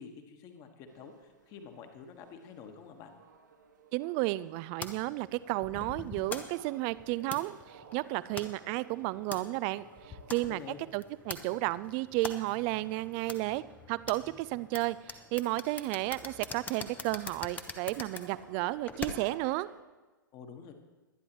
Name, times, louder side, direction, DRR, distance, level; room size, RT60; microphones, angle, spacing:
voice 1, 0.0-3.1 10.4-10.8 20.3-20.7, left 6 dB, 30° left, 6 dB, 1.6 m, -48 dB
sound 1, 0.9-19.8, right 6 dB, 60° right, 1.5 m, -57 dB
voice 2, 3.9-7.6 7.9-9.8 10.3-10.6 10.9-13.6 13.9-19.7, right 19 dB, 35° right, 18 dB, 0.4 m, -32 dB
sound 2, 4.8-19.5, left 4 dB, 15° left, 0.9 m, -45 dB
22.5 x 9.9 x 3.1 m, 1.2 s
figure-of-eight pair, 105°, 11 cm